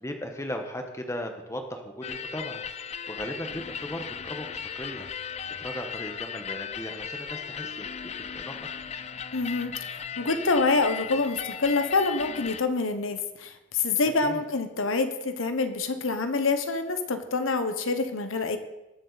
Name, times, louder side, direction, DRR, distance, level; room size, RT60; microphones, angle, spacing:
voice 1, 0.0-2.7 3.1-5.3 5.6-7.9 8.3-8.7 14.2-14.4, equal, 15° left, 5 dB, 1.2 m, -37 dB
sound 1, 2.0-12.6, left 7 dB, 30° left, 0.4 m, -37 dB
voice 2, 9.3-18.6, left 3 dB, 85° left, 8 dB, 1.1 m, -26 dB
20.0 x 7.5 x 4.1 m, 1.0 s
head